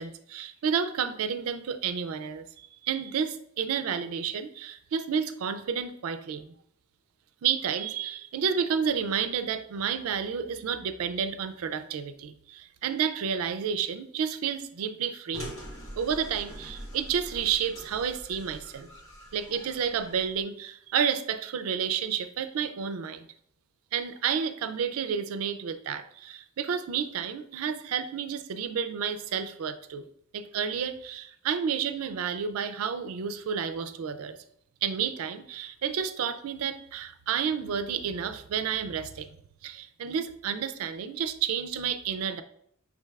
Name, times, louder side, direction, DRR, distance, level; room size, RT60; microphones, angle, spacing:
voice 1, 0.0-6.5 7.4-15.5 16.0-18.9 19.3-23.3 23.9-30.1 30.3-34.4 34.8-39.3 39.6-42.4, right 7 dB, 85° right, 11 dB, 0.4 m, -30 dB
sound 1, 15.3-20.4, equal, 75° left, 1.0 m, -44 dB
5.7 x 2.3 x 3.2 m, 0.69 s
head